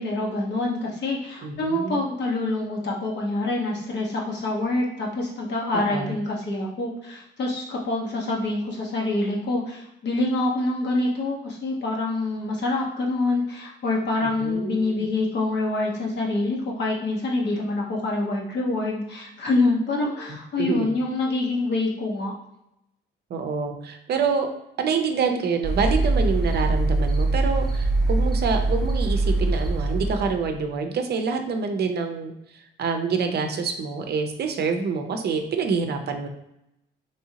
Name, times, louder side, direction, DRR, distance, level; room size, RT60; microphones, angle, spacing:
voice 1, 0.0-22.3, left 2 dB, 60° left, -1 dB, 1.0 m, -26 dB
voice 2, 1.4-2.0 5.7-6.2 14.2-15.1 20.1-20.2 20.6-20.9 23.3-24.5 24.8-36.3, right 5 dB, 55° right, 5 dB, 0.5 m, -27 dB
sound 1, 25.6-30.5, right 2 dB, ahead, 0.6 m, -23 dB
3.0 x 2.7 x 2.8 m, 0.84 s
cardioid pair, 90°, 20 cm